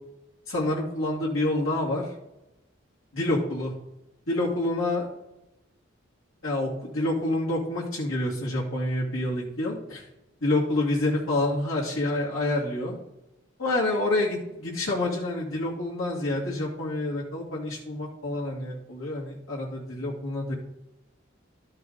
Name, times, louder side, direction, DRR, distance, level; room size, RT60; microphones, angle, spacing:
voice 1, 0.5-2.0 3.1-3.7 4.3-5.1 6.4-10.0 10.4-13.0 13.6-20.5, left 2 dB, 90° left, -5 dB, 2.4 m, -27 dB
12.0 x 5.6 x 4.0 m, 0.89 s
head